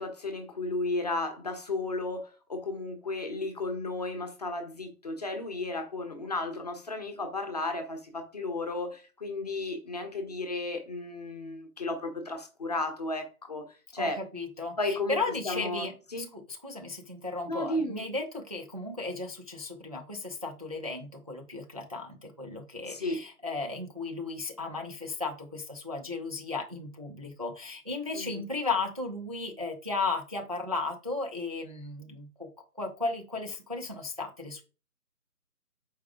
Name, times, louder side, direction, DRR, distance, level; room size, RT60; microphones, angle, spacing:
voice 1, 0.0-13.6 13.9-14.2 14.8-16.3 17.5-18.1 22.9-23.2 28.1-28.4, left 2 dB, 25° left, 0.9 m, -34 dB
voice 2, 14.3-32.5 32.8-34.6, left 3 dB, 25° right, 0.6 m, -35 dB
7.1 x 4.8 x 3.5 m
figure-of-eight pair, 155°, 46 cm